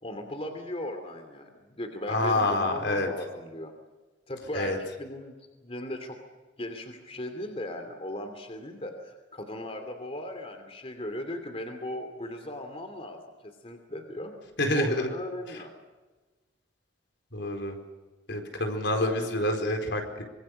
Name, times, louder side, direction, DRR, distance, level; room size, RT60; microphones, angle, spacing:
voice 1, 0.0-3.7 4.3-5.4 5.6-6.2 6.6-14.4 14.7-15.7 18.9-19.2, left 1 dB, 30° left, 6 dB, 2.8 m, -37 dB
voice 2, 2.1-3.1 4.5-4.8 14.6-15.1 17.3-17.8 18.3-20.2, left 1 dB, 70° left, 4 dB, 4.5 m, -27 dB
25.0 x 23.5 x 6.6 m, 1.2 s
head